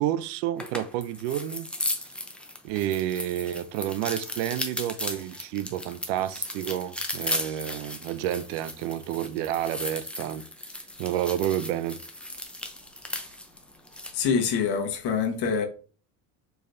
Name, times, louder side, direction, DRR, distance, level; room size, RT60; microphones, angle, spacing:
voice 1, 0.0-1.7 2.6-10.4 11.0-12.0, right 12 dB, 80° right, 0.5 m, -30 dB
sound 1, 0.6-14.2, left 1 dB, ahead, 0.6 m, -36 dB
voice 2, 14.1-15.6, left 6 dB, 55° left, 1.3 m, -25 dB
4.6 x 3.1 x 2.6 m
supercardioid pair, 95°, 46 cm